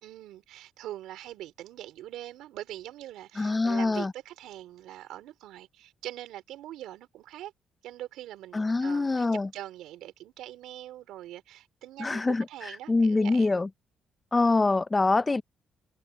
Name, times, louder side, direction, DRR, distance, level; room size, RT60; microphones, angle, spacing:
voice 1, 0.0-7.5 7.8-12.2 12.5-13.5, right 13 dB, 90° right, 3.9 m, -43 dB
voice 2, 3.4-4.1 8.5-9.5 12.0-12.5 12.9-13.7 14.3-15.4, left 3 dB, 25° left, 0.6 m, -24 dB
cardioid pair, 90°, 0 cm